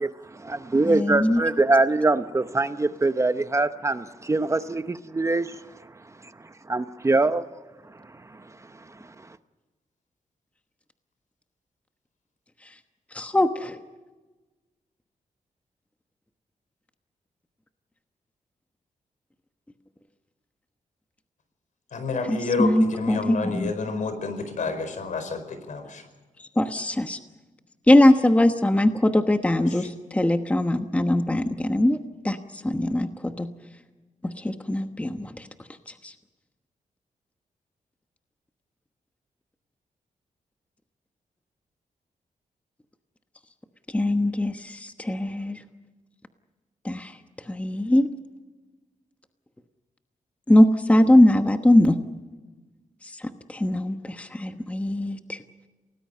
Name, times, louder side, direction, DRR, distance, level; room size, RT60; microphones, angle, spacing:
voice 1, 0.0-5.6 6.7-7.5 8.3-8.4, right 2 dB, 20° right, 0.8 m, -23 dB
voice 2, 0.8-1.4 13.1-13.8 22.3-23.7 26.6-27.2 27.9-32.0 32.2-33.5 34.2-35.5 36.0-36.1 43.9-45.6 46.8-47.2 47.5-48.1 50.5-52.0 53.0-55.4, left 1 dB, 10° left, 1.1 m, -21 dB
voice 3, 21.9-26.1 29.7-29.9, left 4 dB, 70° left, 4.8 m, -29 dB
29.0 x 19.0 x 5.6 m
wide cardioid pair, 125°, 14 cm